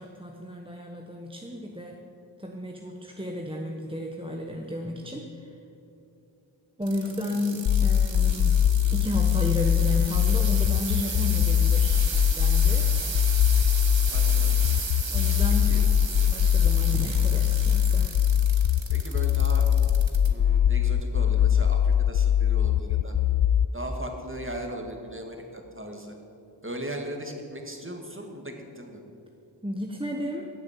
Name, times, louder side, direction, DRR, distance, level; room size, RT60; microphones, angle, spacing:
voice 1, 0.0-2.0 2.4-5.5 6.8-12.0 12.4-12.9 15.1-15.8 16.3-18.1 29.6-30.5, left 1 dB, 10° right, 1 dB, 1.2 m, -33 dB
sound 1, 6.8-20.3 20.8-21.3 21.9-22.0, right 4 dB, 75° right, 1.6 m, -35 dB
sound 2, 7.7-23.7, left 9 dB, 70° left, 0.5 m, -22 dB
voice 2, 14.1-14.6 15.6-15.8 18.9-19.7 20.2-23.1 23.7-26.2 26.6-29.0, right 1 dB, 25° right, 3 dB, 2.2 m, -38 dB
15.0 x 7.7 x 9.3 m, 2.7 s
wide cardioid pair, 45°, 45 cm